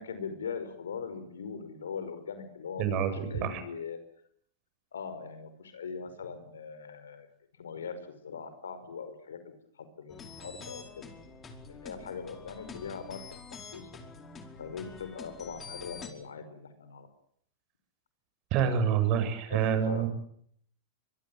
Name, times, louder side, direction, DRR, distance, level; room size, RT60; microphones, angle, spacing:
voice 1, 0.0-4.0 4.9-7.3 7.6-11.1 11.7-13.2 13.5-13.9 14.6-17.1 19.5-20.1, left 6 dB, 90° left, 11 dB, 5.3 m, -41 dB
voice 2, 2.8-3.6 18.5-20.1, right 8 dB, 45° right, 9 dB, 7.8 m, -27 dB
sound 1, 10.1-16.1, left 5 dB, 25° left, 5.0 m, -47 dB
24.5 x 23.0 x 9.1 m, 0.67 s
hypercardioid pair, 110°, 0 cm